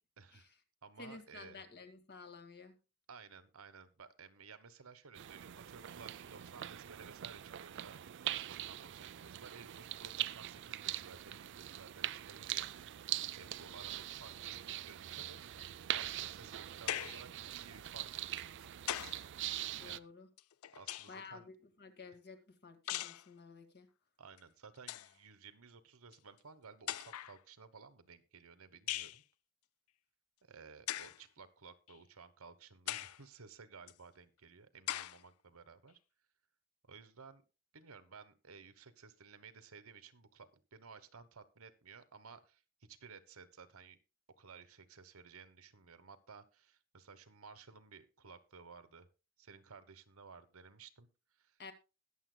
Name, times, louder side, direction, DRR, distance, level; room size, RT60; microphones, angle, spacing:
voice 1, 0.2-0.5 0.8-1.6 3.1-8.0 8.5-12.7 13.3-18.5 19.8-20.1 20.7-21.5 24.2-29.2 30.4-36.0 36.8-37.4 37.7-42.6 42.9-44.0 44.4-49.1 49.4-51.6, right 5 dB, 75° right, 12 dB, 1.2 m, -56 dB
voice 2, 1.0-2.8 19.8-20.3 21.1-23.9 51.6-51.7, left 4 dB, 50° left, 7 dB, 1.9 m, -52 dB
sound 1, 5.1-20.0, right 12 dB, 55° right, 0.4 m, -43 dB
sound 2, 13.5-19.3, right 2 dB, 90° right, 1.4 m, -67 dB
sound 3, 16.9-17.3 18.4-19.3 20.4-21.3 22.9-23.3 24.4-24.5 24.8-25.1 26.1-26.2 26.9-27.4 28.9-29.2 30.9-31.2 31.9-32.0 32.9-33.2 33.9-34.0 34.9-35.2, left 13 dB, 75° left, 0.4 m, -40 dB
21.0 x 7.3 x 2.3 m, 0.30 s
head